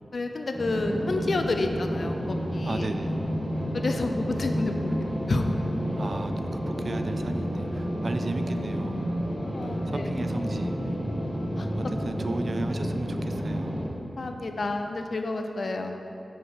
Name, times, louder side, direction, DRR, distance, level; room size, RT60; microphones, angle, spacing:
voice 1, 0.1-2.9 3.7-5.5 9.5-10.1 11.6-11.7 14.0-16.0, left 2 dB, 60° left, 5 dB, 0.4 m, -30 dB
sound 1, 0.5-13.9, equal, 10° left, 1.3 m, -30 dB
voice 2, 2.6-3.2 6.0-9.0 9.6-10.9 11.8-13.8, right 2 dB, 45° right, 8 dB, 0.3 m, -35 dB
sound 2, 3.0-12.5, left 1 dB, 80° left, 1.4 m, -42 dB
4.6 x 4.2 x 5.3 m, 2.8 s
wide cardioid pair, 80°, 0 cm